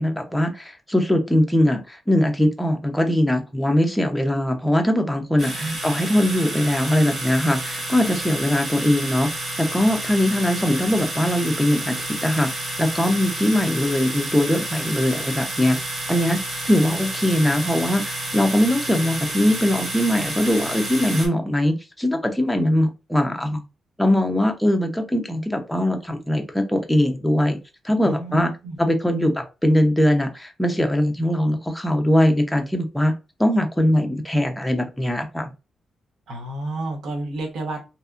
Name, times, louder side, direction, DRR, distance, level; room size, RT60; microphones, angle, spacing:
voice 1, 0.0-9.3 9.6-12.5 12.8-15.8 16.1-16.4 16.6-23.6 24.0-27.6 27.8-28.5 28.8-33.1 33.4-35.5, left 1 dB, 5° left, 4 dB, 0.5 m, -21 dB
sound 1, 5.4-21.3, right 1 dB, 45° right, 0.9 m, -30 dB
voice 2, 28.0-28.8 36.3-37.8, right 2 dB, 90° right, 2 dB, 0.8 m, -30 dB
2.8 x 2.3 x 2.4 m, 0.28 s
wide cardioid pair, 145°, 0 cm